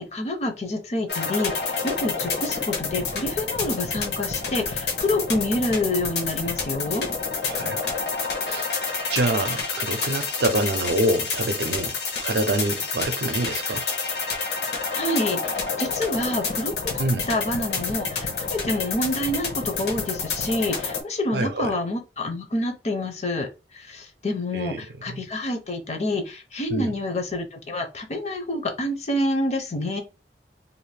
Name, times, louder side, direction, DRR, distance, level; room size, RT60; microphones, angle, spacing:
voice 1, 0.0-7.1 14.9-23.5 23.7-30.0, left 1 dB, 40° left, 0.6 m, -27 dB
sound 1, 1.1-21.0, left 4 dB, 70° left, 0.9 m, -29 dB
voice 2, 7.4-8.1 8.4-8.8 9.1-13.8 17.0-17.3 21.3-21.7 24.5-25.2 26.7-27.0, right 2 dB, 70° right, 0.5 m, -26 dB
2.6 x 2.4 x 3.3 m
head